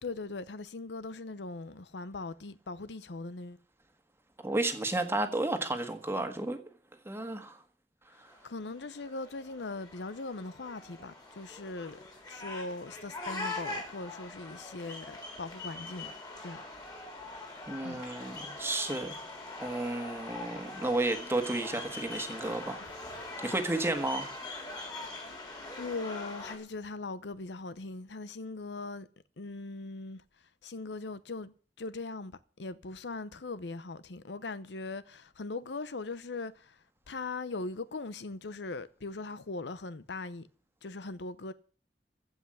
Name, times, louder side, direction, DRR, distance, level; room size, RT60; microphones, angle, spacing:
voice 1, 0.0-3.6 8.1-12.0 12.3-16.1 16.4-16.6 17.8-18.0 22.8-23.3 25.8-29.1 29.4-30.2 30.6-40.5 40.8-41.5, left 3 dB, 80° left, 0.8 m, -40 dB
voice 2, 4.4-6.6 7.0-7.6 17.7-19.1 19.6-22.8 23.4-24.4, right 2 dB, 15° right, 1.6 m, -32 dB
sound 1, 8.3-26.6, left 2 dB, 25° left, 3.5 m, -43 dB
15.5 x 5.7 x 9.7 m
head